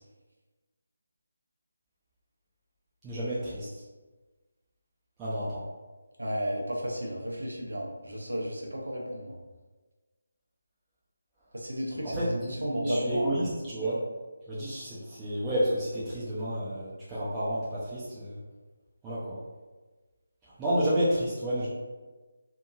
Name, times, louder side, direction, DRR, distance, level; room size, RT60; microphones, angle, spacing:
voice 1, 3.0-3.8 5.2-5.6 12.0-12.3 12.7-14.0 14.5-18.4 19.0-19.4 20.6-21.7, right 1 dB, 10° right, -11 dB, 0.6 m, -30 dB
voice 2, 6.2-9.4 11.5-13.5, equal, 75° right, -2 dB, 0.8 m, -33 dB
2.8 x 2.6 x 2.4 m, 1.3 s
figure-of-eight pair, 155°, 0 cm